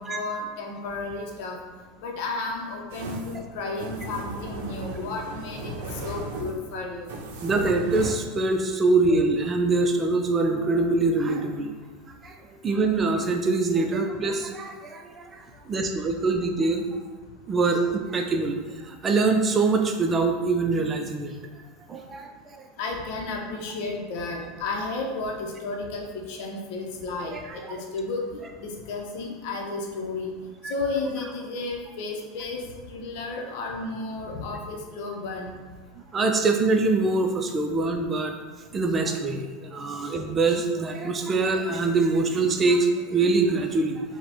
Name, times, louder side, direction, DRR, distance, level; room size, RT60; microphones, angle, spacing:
voice 1, 0.0-1.5 2.0-5.7 6.0-7.1 22.8-30.3 30.7-32.6 32.9-35.5, left 3 dB, 65° left, 1 dB, 0.7 m, -32 dB
sound 1, 2.9-8.1, right 2 dB, 75° right, 0.6 m, -36 dB
voice 2, 7.4-11.7 12.2-12.4 12.6-15.3 15.7-16.8 17.5-18.6 18.8-21.3 21.9-22.3 27.3-27.4 30.6-30.7 34.5-34.6 36.1-38.4 38.7-44.0, right 3 dB, 25° right, 4 dB, 0.5 m, -24 dB
4.6 x 2.2 x 3.5 m, 1.3 s
hypercardioid pair, 100°, 0 cm